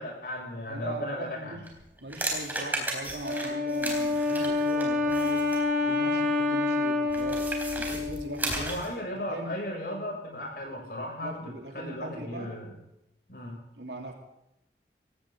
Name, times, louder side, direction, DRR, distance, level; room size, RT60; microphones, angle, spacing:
voice 1, 0.0-1.6 6.1-6.2 8.5-12.7 13.3-13.5, equal, 55° left, 0 dB, 6.7 m, -36 dB
voice 2, 0.7-1.6 2.0-5.4 5.8-7.4 7.7-8.8 9.3-9.5 11.2-12.5 13.8-14.1, right 1 dB, 75° right, 2 dB, 3.0 m, -40 dB
sound 1, 1.6-5.7 7.1-8.9, right 1 dB, 10° right, 3.8 m, -35 dB
Wind instrument woodwind instrument, 3.2-8.6, left 3 dB, 50° right, 4.1 m, -27 dB
18.5 x 17.0 x 3.8 m, 0.86 s
head